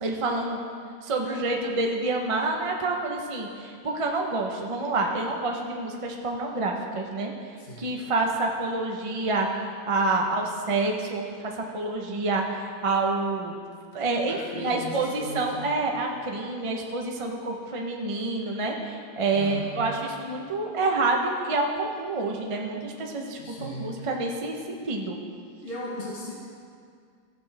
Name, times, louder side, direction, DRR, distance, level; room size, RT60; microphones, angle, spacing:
voice 1, 0.0-0.6 1.0-7.3 7.8-13.6 13.9-24.6 24.8-25.2, right 3 dB, 35° right, 1 dB, 0.5 m, -28 dB
voice 2, 7.6-7.9 14.3-15.6 19.3-19.7 23.4-23.9 25.6-26.4, left 1 dB, 40° left, -5 dB, 1.2 m, -37 dB
15.0 x 6.7 x 3.4 m, 2.2 s
omnidirectional pair, 1.8 m